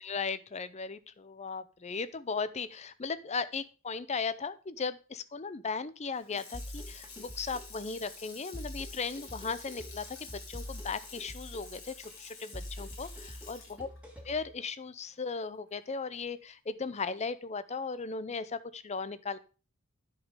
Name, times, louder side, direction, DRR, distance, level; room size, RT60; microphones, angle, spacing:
voice 1, 0.0-10.0 10.5-13.9 14.3-19.4, left 5 dB, 30° left, 14 dB, 0.6 m, -37 dB
Water tap faucet / Sink (filling or washing), 6.1-15.3 15.7-15.8, left 4 dB, 65° left, 3.3 m, -50 dB
sound 1, 6.5-14.5, equal, 5° right, 2.0 m, -45 dB
10.5 x 5.2 x 5.0 m, 0.35 s
head